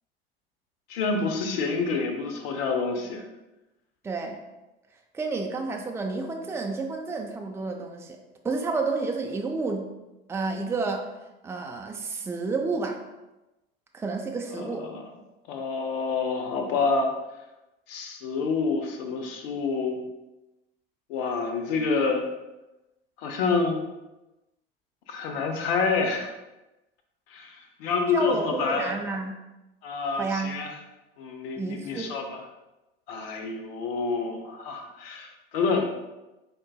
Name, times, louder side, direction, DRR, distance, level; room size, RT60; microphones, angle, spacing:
voice 1, 0.9-3.2 14.5-15.0 15.5-17.1 17.9-20.0 21.1-22.3 23.2-23.9 25.1-26.3 27.3-28.9 29.8-30.8 31.2-32.4 33.1-35.9, left 4 dB, 75° left, 4 dB, 0.7 m, -28 dB
voice 2, 4.0-4.4 5.1-8.2 8.4-9.9 10.3-11.1 11.4-13.0 13.9-14.8 28.1-29.4 30.2-30.6 31.6-32.2, right 3 dB, 10° right, 2 dB, 0.4 m, -30 dB
3.8 x 3.8 x 2.3 m, 1.0 s
hypercardioid pair, 75°, 30 cm